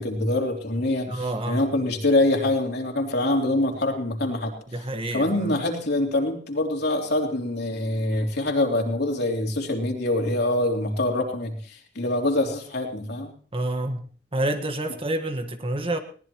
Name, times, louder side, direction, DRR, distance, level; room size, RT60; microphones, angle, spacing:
voice 1, 0.0-4.5 5.1-13.3, left 1 dB, 60° left, 2 dB, 3.4 m, -25 dB
voice 2, 1.1-1.7 4.7-5.6 13.5-14.1 14.3-16.0, right 1 dB, 30° right, 7 dB, 1.4 m, -28 dB
21.0 x 18.5 x 3.1 m, 0.42 s
head